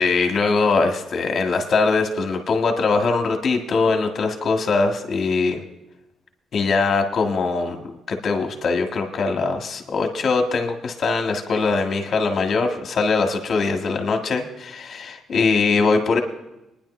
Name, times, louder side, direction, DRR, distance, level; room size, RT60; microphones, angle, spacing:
voice 1, 0.0-5.6 6.5-16.2, left 4 dB, 50° left, 3 dB, 1.6 m, -22 dB
23.0 x 10.5 x 3.2 m, 0.93 s
cardioid pair, 125°, 0 cm